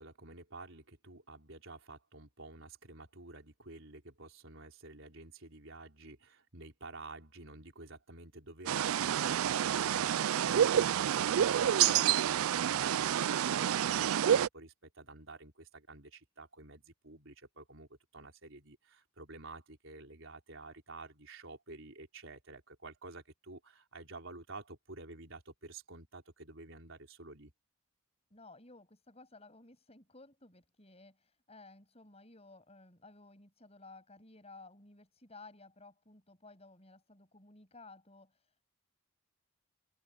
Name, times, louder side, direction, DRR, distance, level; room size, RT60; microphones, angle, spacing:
voice 1, 0.0-27.5, right 2 dB, 60° right, 4.8 m, -51 dB
sound 1, 8.7-14.5, right 10 dB, 80° right, 0.4 m, -28 dB
voice 2, 28.3-38.6, left 3 dB, 30° left, 7.9 m, -56 dB
open air
head